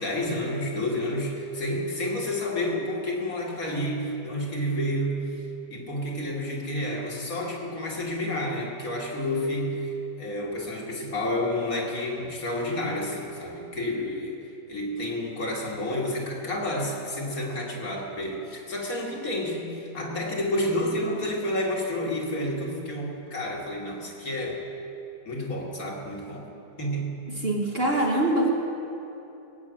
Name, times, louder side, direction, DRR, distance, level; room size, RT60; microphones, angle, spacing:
voice 1, 0.0-5.3 5.7-14.4 14.7-24.6 25.2-26.5 26.8-27.2, left 1 dB, 55° left, -2 dB, 2.4 m, -30 dB
voice 2, 27.4-28.5, right 1 dB, 40° right, 0 dB, 1.3 m, -23 dB
18.5 x 8.5 x 7.4 m, 2.9 s
omnidirectional pair, 1.8 m